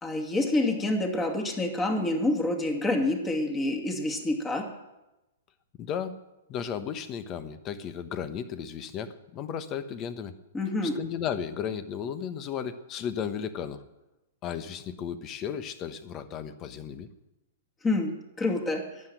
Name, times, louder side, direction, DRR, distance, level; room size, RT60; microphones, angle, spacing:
voice 1, 0.0-4.7 10.5-10.9 17.8-18.9, left 2 dB, 15° left, 3 dB, 2.4 m, -27 dB
voice 2, 5.8-6.2 6.5-10.3 10.8-13.8 14.4-17.1, left 8 dB, 30° left, 12 dB, 1.1 m, -34 dB
12.0 x 10.0 x 9.2 m, 1.0 s
hypercardioid pair, 140°, 0 cm